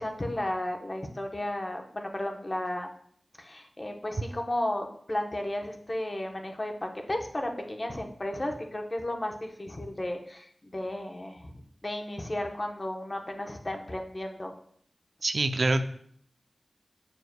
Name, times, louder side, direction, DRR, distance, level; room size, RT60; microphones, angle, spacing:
voice 1, 0.0-2.9 3.4-11.5 11.8-14.5, left 1 dB, 35° left, 3 dB, 0.9 m, -34 dB
voice 2, 15.2-15.8, right 2 dB, 70° right, 8 dB, 0.5 m, -25 dB
7.0 x 6.2 x 2.2 m, 0.63 s
wide cardioid pair, 50°, 0 cm